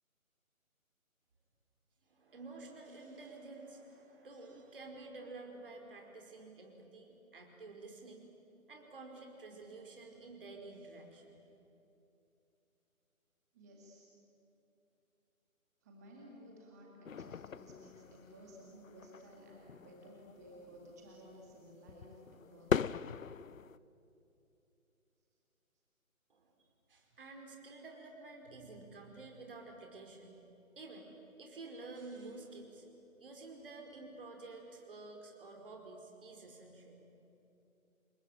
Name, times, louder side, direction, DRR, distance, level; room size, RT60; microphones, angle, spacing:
voice 1, 2.1-8.3 8.7-11.3 26.3-26.5 26.9-30.3 30.7-32.8 33.2-37.0, right 3 dB, 40° right, 1 dB, 5.0 m, -50 dB
voice 2, 13.5-14.1 15.8-22.9, equal, 10° right, -2 dB, 2.1 m, -55 dB
sound 1, 17.1-23.8, left 7 dB, 65° left, 0.6 m, -40 dB
28.0 x 22.5 x 9.2 m, 2.8 s
figure-of-eight pair, 165°, 43 cm